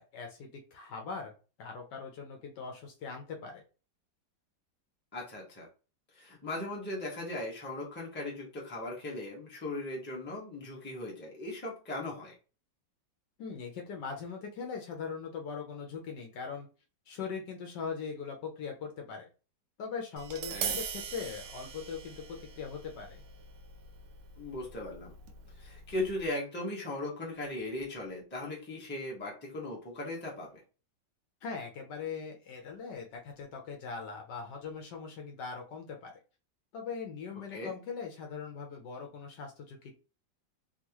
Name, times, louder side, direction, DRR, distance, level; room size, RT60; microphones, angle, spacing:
voice 1, 0.0-1.3 1.6-3.6 13.4-16.7 17.1-19.3 19.8-23.2 31.4-36.1 36.7-39.9, left 5 dB, 75° left, 2 dB, 1.3 m, -40 dB
voice 2, 5.1-5.7 6.1-12.3 20.5-20.8 24.4-25.1 25.6-30.6 37.5-37.7, left 2 dB, 10° left, -2 dB, 0.8 m, -38 dB
Tap, 20.2-26.3, right 6 dB, 70° right, 0.8 m, -42 dB
3.6 x 2.3 x 2.9 m, 0.33 s
omnidirectional pair, 1.9 m